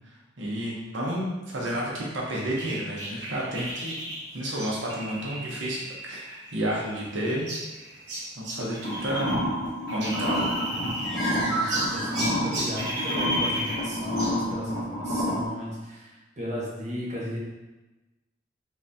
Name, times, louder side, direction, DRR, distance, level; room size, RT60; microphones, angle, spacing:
voice 1, 0.4-3.9 4.3-5.8 6.1-7.5 8.4-9.4 9.9-10.9, right 1 dB, 85° right, -4 dB, 0.8 m, -31 dB
sound 1, 2.6-9.4 9.7-11.3 11.7-14.4, equal, 65° right, 1.0 m, -34 dB
sound 2, 8.8-15.4, equal, 55° left, 0.7 m, -29 dB
Bird, 9.9-12.9, right 1 dB, ahead, 1.0 m, -32 dB
voice 2, 11.3-17.4, equal, 40° right, -6 dB, 1.0 m, -35 dB
3.8 x 3.3 x 2.7 m, 1.1 s
head